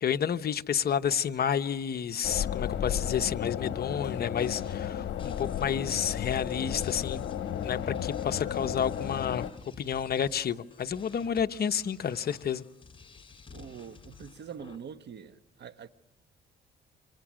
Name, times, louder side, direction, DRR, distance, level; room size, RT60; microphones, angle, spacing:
voice 1, 0.0-7.2 7.5-9.5 9.8-12.6, left 8 dB, 50° left, 1.0 m, -30 dB
sound 1, 2.2-9.5, left 9 dB, 70° left, 1.3 m, -33 dB
sound 2, 4.4-14.8, left 5 dB, 25° left, 4.3 m, -52 dB
voice 2, 13.5-15.9, right 7 dB, 60° right, 1.3 m, -44 dB
28.5 x 27.0 x 6.3 m
cardioid pair, 90°, 20 cm